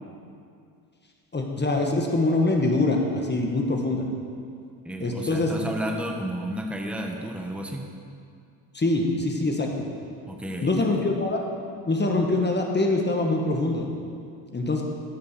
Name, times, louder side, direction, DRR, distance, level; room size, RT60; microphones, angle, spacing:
voice 1, 1.3-4.0 5.0-5.5 8.7-9.7 10.6-11.4 11.9-13.9 14.5-14.8, left 2 dB, 20° left, 1 dB, 1.6 m, -24 dB
voice 2, 4.8-7.9 10.3-11.1, right 1 dB, ahead, 2 dB, 1.2 m, -32 dB
13.0 x 5.3 x 6.8 m, 2.4 s
supercardioid pair, 70°, 48 cm